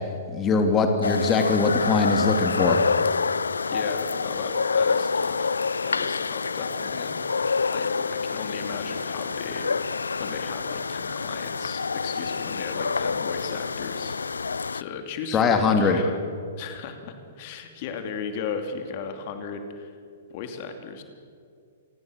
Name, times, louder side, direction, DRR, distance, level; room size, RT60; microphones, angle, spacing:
voice 1, 0.3-2.8 15.3-16.0, left 4 dB, 25° left, 5 dB, 2.7 m, -21 dB
sound 1, 1.0-14.8, left 4 dB, 85° left, 0.5 m, -27 dB
voice 2, 3.6-9.7 10.2-16.2 16.6-20.0 20.3-21.0, left 6 dB, 45° left, 6 dB, 2.9 m, -36 dB
27.5 x 19.0 x 6.6 m, 2.3 s
hypercardioid pair, 120°, 0 cm